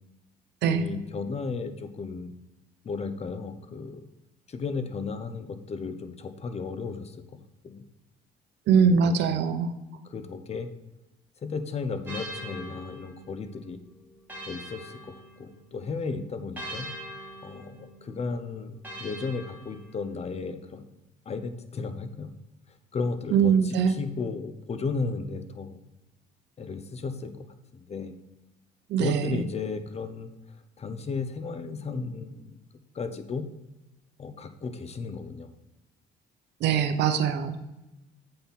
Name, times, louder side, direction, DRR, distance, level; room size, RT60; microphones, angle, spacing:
voice 1, 0.6-2.3 2.8-4.1 4.5-7.2 7.6-7.9 8.9-9.4 10.0-10.7 11.4-13.8 14.5-16.9 17.4-20.9 21.3-22.3 22.7-25.8 26.6-27.4 27.7-28.1 29.0-32.6 32.9-33.5 34.2-35.5, left 4 dB, 35° left, 10 dB, 0.8 m, -34 dB
voice 2, 8.7-9.7 23.3-23.9 28.9-29.4 36.6-37.6, right 6 dB, 75° right, 8 dB, 0.8 m, -22 dB
sound 1, 12.1-15.8 16.6-20.2, right 1 dB, 10° right, 2.5 m, -43 dB
7.7 x 4.3 x 5.4 m, 1.0 s
cardioid pair, 100°, 18 cm